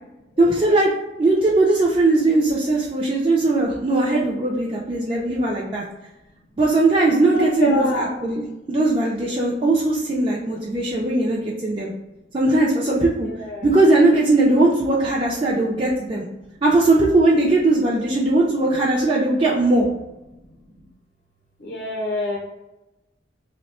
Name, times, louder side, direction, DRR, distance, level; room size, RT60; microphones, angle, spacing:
voice 1, 0.4-0.9 1.2-5.8 6.6-11.9 12.3-13.3 13.6-16.2 16.6-19.9, right 2 dB, 30° right, -4 dB, 0.4 m, -19 dB
voice 2, 7.2-8.1 13.3-13.7 21.6-22.4, left 1 dB, 55° left, -3 dB, 0.7 m, -26 dB
3.1 x 2.1 x 4.1 m, 0.99 s
head